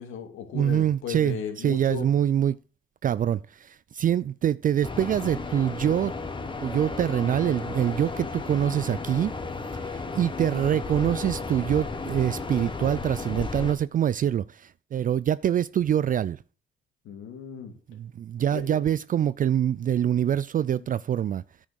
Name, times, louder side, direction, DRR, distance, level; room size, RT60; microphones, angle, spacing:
voice 1, 0.0-2.1 17.0-17.7 18.5-18.8 20.8-20.9, left 7 dB, 85° left, 2.5 m, -36 dB
voice 2, 0.5-2.6 3.0-6.1 6.6-9.3 9.8-16.4 17.9-21.4, right 10 dB, 45° right, 0.4 m, -25 dB
sound 1, 4.8-13.7, left 3 dB, 25° left, 1.6 m, -34 dB
10.0 x 6.3 x 6.4 m
cardioid pair, 90°, 20 cm